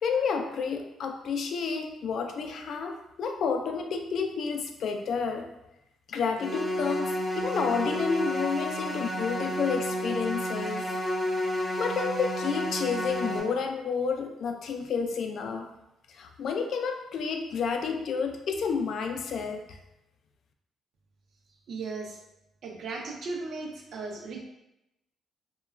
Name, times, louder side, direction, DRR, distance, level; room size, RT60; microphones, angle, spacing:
voice 1, 0.0-5.5 6.1-10.8 11.8-15.7 16.1-19.8, left 5 dB, 65° left, 5 dB, 0.3 m, -30 dB
sound 1, 6.4-13.4, equal, 5° right, 0.5 m, -31 dB
voice 2, 21.7-22.2 22.6-24.5, right 3 dB, 65° right, 1 dB, 0.5 m, -36 dB
2.9 x 2.2 x 2.3 m, 0.89 s
cardioid pair, 90°, 0 cm